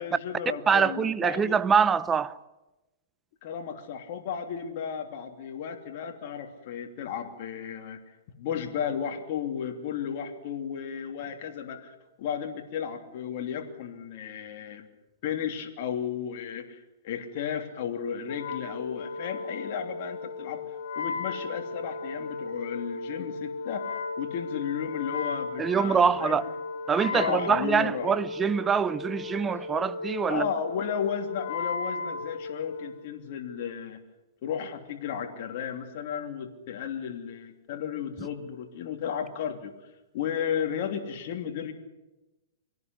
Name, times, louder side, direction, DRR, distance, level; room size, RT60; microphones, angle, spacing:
voice 1, 0.0-1.6 3.4-8.0 8.4-14.9 15.2-20.6 21.0-23.8 24.2-26.4 27.1-28.1 30.3-34.0 34.4-39.7 40.1-41.7, left 8 dB, 50° left, 3.0 m, -34 dB
voice 2, 0.7-2.4 25.6-26.5 26.9-30.5, right 6 dB, 15° right, 0.9 m, -24 dB
Wind instrument woodwind instrument, 18.3-33.0, left 4 dB, 75° left, 3.4 m, -35 dB
24.5 x 18.0 x 9.7 m
hypercardioid pair, 145°, 0 cm